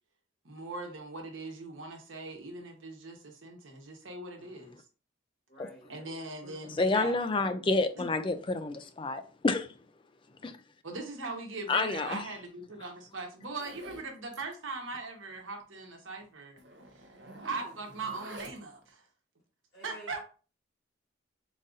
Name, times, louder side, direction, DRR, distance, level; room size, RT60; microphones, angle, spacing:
voice 1, 0.4-4.8 5.9-7.2 8.0-8.1 10.8-16.6 16.9-17.2 17.4-19.1 19.8-20.2, right 3 dB, 80° right, 1.1 m, -40 dB
voice 2, 5.5-7.2 19.7-20.2, right 1 dB, 50° left, 1.1 m, -51 dB
voice 3, 6.8-9.7 10.4-10.6 11.7-12.2, left 3 dB, 25° left, 0.3 m, -29 dB
Zipper (clothing), 13.6-14.1 14.3-14.5 14.8-14.9 15.3-15.4 16.2-16.3 16.6-18.8, right 1 dB, 60° right, 0.7 m, -48 dB
3.9 x 2.5 x 3.9 m
head